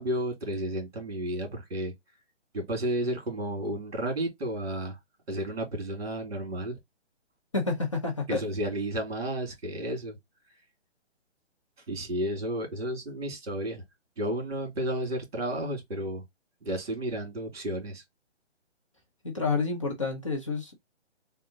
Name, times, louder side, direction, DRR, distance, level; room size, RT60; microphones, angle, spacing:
voice 1, 0.0-1.9 2.5-5.0 5.3-6.8 8.3-10.2 11.9-13.8 14.2-16.2 16.6-18.0, right 1 dB, 60° right, 2.2 m, -32 dB
voice 2, 7.5-8.4 19.2-20.7, left 4 dB, 25° left, 0.7 m, -29 dB
3.6 x 2.3 x 3.8 m
hypercardioid pair, 180°, 35 cm